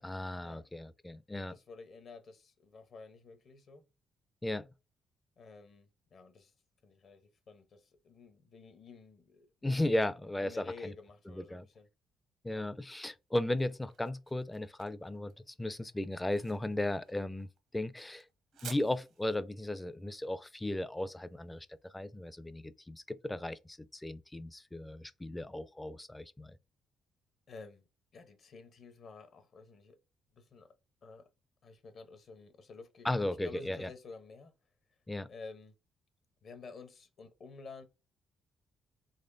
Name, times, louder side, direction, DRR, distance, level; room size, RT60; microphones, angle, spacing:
voice 1, 0.0-1.5 4.4-4.7 9.6-10.9 11.3-11.7 12.4-17.5 17.7-18.2 18.6-26.6 33.0-33.9 35.1-35.3, left 1 dB, 10° left, 0.4 m, -36 dB
voice 2, 1.3-3.8 5.4-6.5 6.8-9.8 10.4-11.9 12.5-12.7 27.5-27.9 28.1-30.0 30.3-30.7 31.0-31.3 31.6-34.6 35.3-35.7 36.4-37.8, left 4 dB, 55° left, 0.9 m, -51 dB
sound 1, 13.1-22.1, right 7 dB, 80° right, 0.8 m, -55 dB
4.2 x 2.9 x 2.6 m
cardioid pair, 90°, 0 cm